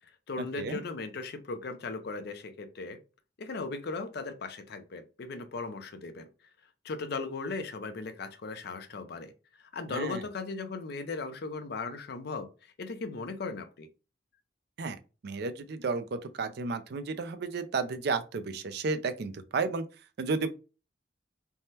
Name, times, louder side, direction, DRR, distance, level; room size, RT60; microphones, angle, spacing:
voice 1, 0.3-3.0 3.4-6.3 6.8-9.3 9.6-13.9, left 3 dB, 65° left, 0.5 m, -37 dB
voice 2, 9.9-10.2 14.8-15.0 15.2-19.9 20.2-20.5, right 4 dB, 65° right, 0.4 m, -32 dB
3.4 x 2.1 x 2.7 m
head